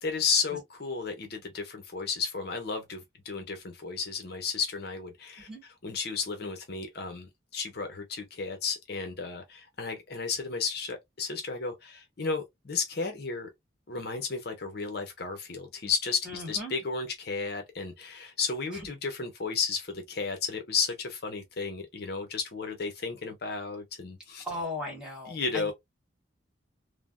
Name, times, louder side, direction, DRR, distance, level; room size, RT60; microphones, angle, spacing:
voice 1, 0.0-5.5 5.8-13.5 13.9-24.4 25.3-25.7, left 5 dB, 55° left, 0.6 m, -33 dB
voice 2, 16.2-16.7 18.7-18.9 24.4-25.7, left 1 dB, 5° right, 1.4 m, -37 dB
3.3 x 2.0 x 2.3 m
head